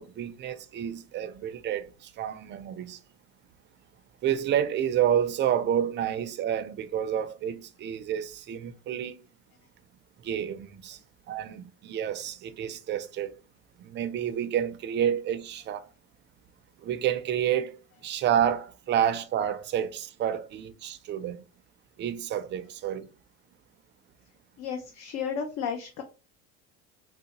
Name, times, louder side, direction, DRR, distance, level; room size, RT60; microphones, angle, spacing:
voice 1, 0.0-3.0 4.2-9.2 10.2-11.0 11.3-13.3 13.8-15.9 16.8-21.4 22.0-23.1, right 10 dB, 35° right, 0.5 m, -29 dB
voice 2, 24.6-26.0, left 7 dB, 55° left, 0.6 m, -33 dB
3.8 x 2.1 x 2.8 m
supercardioid pair, 105°, 32 cm